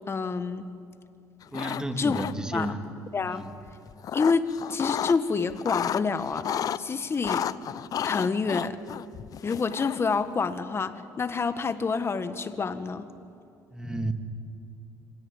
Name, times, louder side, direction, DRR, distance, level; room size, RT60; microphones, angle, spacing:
voice 1, 0.1-0.6 2.0-2.2 2.5-2.7 3.1-3.5 4.1-6.5 6.8-7.4 8.0-8.8 9.4-13.1, left 4 dB, 30° left, 11 dB, 1.6 m, -27 dB
sound 1, 1.4-1.8 2.1-2.7 3.7-5.2 5.5-6.8 7.2-10.1, left 9 dB, 50° left, 0.6 m, -31 dB
voice 2, 1.5-2.8 3.3-3.4 13.7-14.1, right 1 dB, 10° right, 7 dB, 2.1 m, -32 dB
25.5 x 18.0 x 9.1 m, 2.6 s
supercardioid pair, 80°, 8 cm